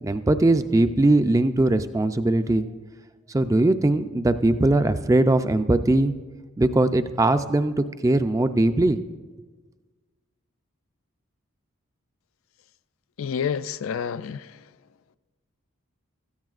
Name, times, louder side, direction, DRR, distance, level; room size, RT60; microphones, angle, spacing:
voice 1, 0.0-2.7 3.3-6.1 6.6-9.0, right 2 dB, 15° right, 0.3 m, -20 dB
voice 2, 13.2-14.6, left 7 dB, 65° left, 0.3 m, -29 dB
16.5 x 14.0 x 2.4 m
head